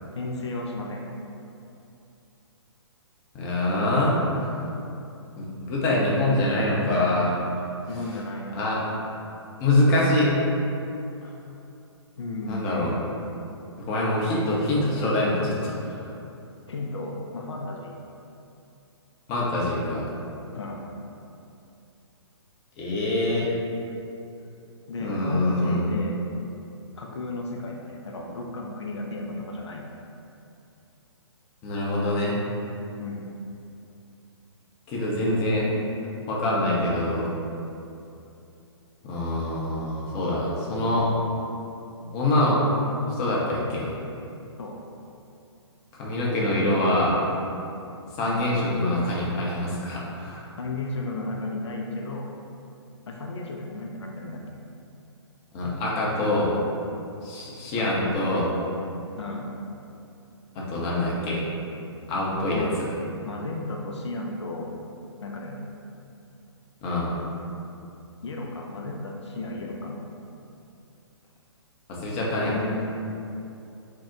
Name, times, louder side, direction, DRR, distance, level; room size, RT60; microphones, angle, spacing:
voice 1, 0.2-1.0 7.9-8.6 12.2-12.7 16.7-17.9 20.5-20.9 24.9-26.2 27.0-29.8 33.0-33.3 44.6-44.8 48.2-48.5 50.6-52.3 53.1-54.6 57.8-58.0 59.2-59.5 62.5-62.8 63.2-64.7 65.2-65.7 68.2-70.0 72.3-73.0, left 2 dB, 75° left, -1 dB, 0.4 m, -34 dB
voice 2, 3.3-4.2 5.4-7.3 8.5-8.8 9.6-10.3 11.2-11.3 12.5-12.9 13.9-16.1 19.3-20.1 22.8-23.5 25.0-25.8 31.6-32.4 34.9-35.7 36.3-37.3 39.0-41.1 42.1-42.6 43.2-43.9 46.0-47.2 48.2-50.4 55.5-56.5 57.2-58.5 60.5-61.4 62.1-62.7 66.8-67.2 71.9-72.5, left 1 dB, 25° left, -5 dB, 0.5 m, -25 dB
2.6 x 2.1 x 3.5 m, 2.7 s
figure-of-eight pair, 130°, 15 cm